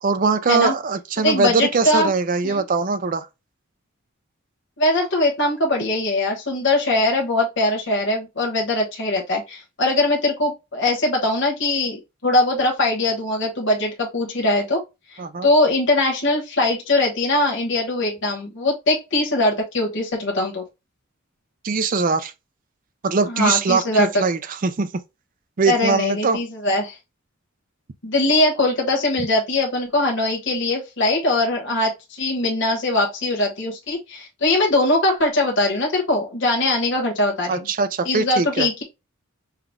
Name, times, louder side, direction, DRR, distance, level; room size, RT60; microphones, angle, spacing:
voice 1, 0.0-3.3 15.2-15.5 21.6-22.3 23.0-24.9 25.6-26.4 37.5-38.7, right 4 dB, 40° right, 0.5 m, -21 dB
voice 2, 1.2-2.1 2.4-2.6 4.8-14.8 15.1-20.6 23.3-24.2 25.6-27.0 28.0-37.7 38.0-38.8, left 2 dB, 60° left, 1.2 m, -21 dB
5.7 x 2.3 x 3.6 m
head